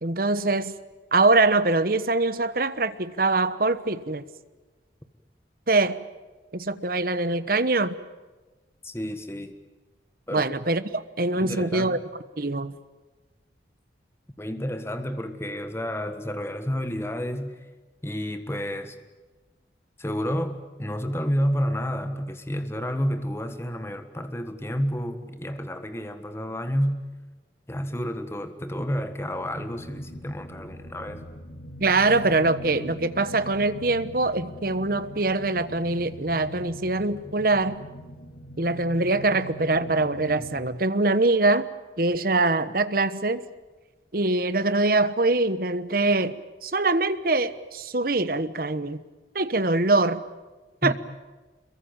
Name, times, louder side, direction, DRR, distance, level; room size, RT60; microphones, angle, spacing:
voice 1, 0.0-0.7 1.1-4.2 5.7-6.0 6.5-8.0 10.3-12.0 12.4-12.7 31.8-37.8 38.6-41.7 42.0-43.4 44.1-49.0 49.3-50.2 50.8-50.9, right 2 dB, 50° right, 13 dB, 1.2 m, -23 dB
voice 2, 8.8-9.5 10.3-10.5 11.3-12.0 14.4-17.6 18.0-19.0 20.0-27.0 27.7-31.3 50.8-50.9, equal, 15° left, 8 dB, 1.5 m, -30 dB
sound 1, 28.6-40.7, equal, 60° left, 1.8 m, -42 dB
27.0 x 22.5 x 8.9 m, 1.2 s
head